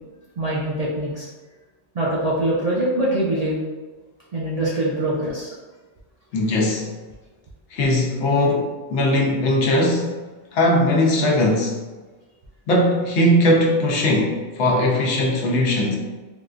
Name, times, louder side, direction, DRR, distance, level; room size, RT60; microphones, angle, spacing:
voice 1, 0.4-1.3 1.9-3.6 4.3-5.5, right 1 dB, 55° right, -6 dB, 0.4 m, -23 dB
voice 2, 6.3-6.9 7.7-10.1 10.5-11.8 12.7-16.0, left 1 dB, 80° left, -1 dB, 0.9 m, -19 dB
3.6 x 2.3 x 2.4 m, 1.3 s
omnidirectional pair, 1.2 m